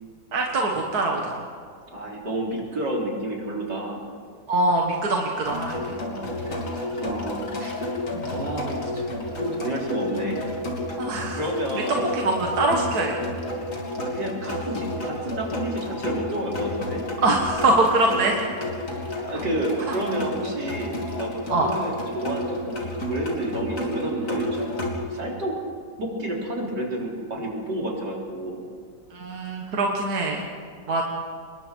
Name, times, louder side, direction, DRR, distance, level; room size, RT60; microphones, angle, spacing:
voice 1, 0.3-1.5 4.5-6.0 8.1-8.3 11.0-11.4 11.7-11.8 12.1-13.1 14.4-14.6 17.2-18.4 19.9-20.0 21.5-21.7 29.1-30.5 30.9-31.0, right 2 dB, 65° right, 0 dB, 2.2 m, -23 dB
voice 2, 1.9-4.0 6.0-6.3 6.9-7.7 8.2-9.0 9.4-10.4 11.2-12.0 14.0-17.0 19.2-22.7 23.1-24.7 25.1-25.6 26.0-28.6, right 1 dB, 85° right, -2 dB, 4.4 m, -30 dB
sound 1, 5.4-25.0, left 1 dB, 50° left, 3.5 m, -31 dB
26.5 x 21.5 x 4.6 m, 2.2 s
omnidirectional pair, 1.8 m